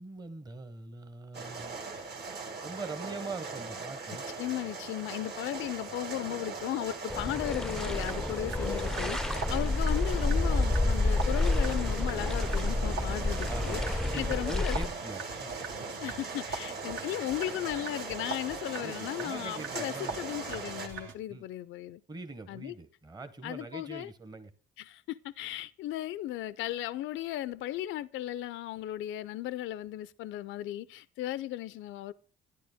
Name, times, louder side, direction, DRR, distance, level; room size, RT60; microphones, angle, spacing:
voice 1, 0.0-1.8 2.6-4.3 9.4-9.7 13.5-15.5 18.8-20.2 21.3-21.5 22.1-24.5, right 3 dB, 20° right, 0.8 m, -42 dB
sound 1, 1.3-20.9, right 4 dB, 55° right, 1.7 m, -40 dB
voice 2, 4.4-14.8 16.0-22.0 22.5-22.8 23.4-24.1 24.8-32.1, left 14 dB, 75° left, 0.4 m, -36 dB
sound 2, 7.1-14.9, left 2 dB, 5° left, 0.4 m, -29 dB
sound 3, 7.6-21.1, right 4 dB, 80° right, 1.7 m, -43 dB
11.5 x 10.0 x 3.5 m
cardioid pair, 90°, 20 cm